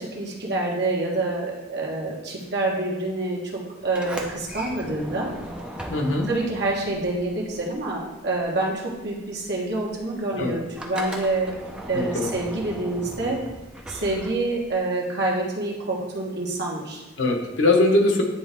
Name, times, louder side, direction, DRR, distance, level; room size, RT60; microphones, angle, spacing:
voice 1, 0.0-5.3 6.3-11.5 11.9-13.4 13.9-17.0, right 2 dB, 55° right, -2 dB, 1.4 m, -27 dB
Sliding door, 3.8-8.1 8.4-14.8, right 1 dB, 5° right, 0.6 m, -38 dB
voice 2, 5.9-6.3 10.4-10.5 11.9-12.3 17.2-18.2, left 2 dB, 75° left, 1 dB, 1.1 m, -21 dB
9.7 x 3.5 x 3.5 m, 1.0 s
head